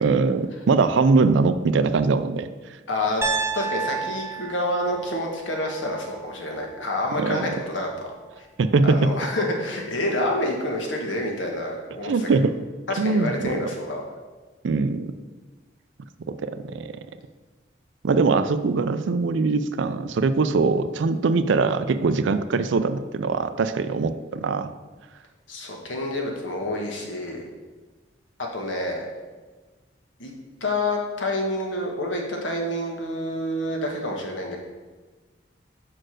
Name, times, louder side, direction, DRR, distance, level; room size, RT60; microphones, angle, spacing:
voice 1, 0.0-2.5 7.2-7.5 8.6-9.2 12.0-12.5 13.0-13.7 14.6-15.1 16.4-16.9 18.0-24.7, right 4 dB, 80° right, 11 dB, 0.4 m, -22 dB
voice 2, 2.9-3.2 3.5-8.1 8.4-8.5 8.8-12.3 12.9-14.1 25.5-27.4 28.5-29.1 30.2-30.3 30.6-34.6, left 1 dB, 85° left, 1 dB, 1.5 m, -28 dB
Piano, 3.2-7.3, right 4 dB, 15° right, 0.5 m, -32 dB
6.2 x 4.5 x 6.3 m, 1.3 s
head